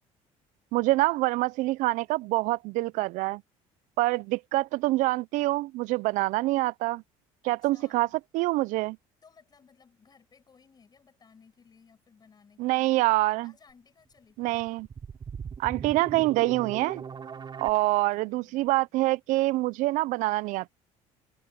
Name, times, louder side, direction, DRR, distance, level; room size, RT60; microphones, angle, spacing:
voice 1, 0.7-3.4 4.0-7.0 7.4-8.1 8.3-9.0 12.6-13.5 14.4-14.9 15.6-17.0 17.6-20.7, right 19 dB, 70° right, 0.5 m, -26 dB
voice 2, 7.4-8.2 9.2-13.1 13.4-14.6 17.8-17.9 18.2-18.7, left 6 dB, 30° left, 7.4 m, -59 dB
sound 1, 14.4-17.7, right 6 dB, 35° right, 3.7 m, -39 dB
open air
cardioid pair, 110°, 14 cm